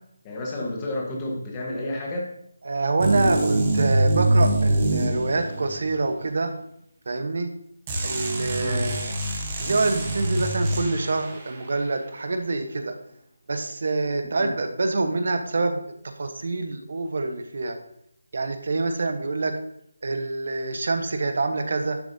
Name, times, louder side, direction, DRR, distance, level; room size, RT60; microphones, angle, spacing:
voice 1, 0.2-2.3 8.6-8.9 14.3-14.5, left 1 dB, 10° left, -2 dB, 1.2 m, -31 dB
voice 2, 2.6-6.5 7.1-7.5 8.0-9.1 9.6-12.9 13.5-15.8 16.2-17.8 18.3-19.5 20.0-22.0, right 3 dB, 45° right, 7 dB, 1.0 m, -26 dB
sound 1, 3.0-5.9 7.9-11.3, right 1 dB, 15° right, 1.1 m, -24 dB
10.5 x 7.4 x 2.7 m, 0.75 s
figure-of-eight pair, 175°, 0 cm